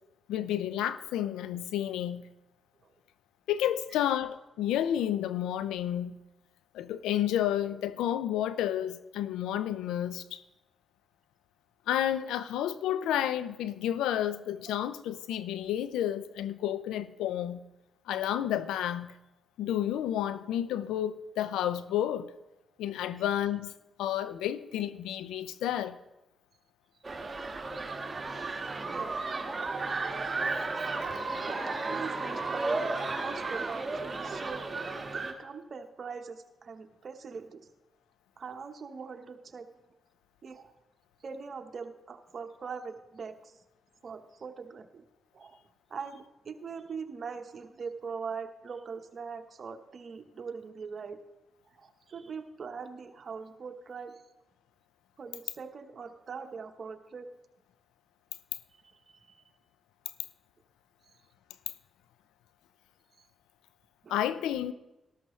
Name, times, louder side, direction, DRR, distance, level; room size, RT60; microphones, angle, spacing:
voice 1, 0.3-2.3 3.5-6.2 6.7-10.4 11.9-17.6 18.1-19.1 19.6-22.3 22.8-23.7 24.0-26.0 64.1-64.7, left 11 dB, 90° left, 0.4 m, -31 dB
sound 1, 27.0-35.3, right 3 dB, 40° right, 1.5 m, -33 dB
voice 2, 31.4-37.7 38.4-39.7 40.4-40.7 41.2-43.5 44.0-45.0 45.3-45.6 45.9-51.2 51.7-54.2 55.2-57.3 58.7-59.4 64.0-64.2, right 5 dB, 55° right, 1.0 m, -42 dB
13.0 x 12.0 x 3.2 m
supercardioid pair, 50°, 0 cm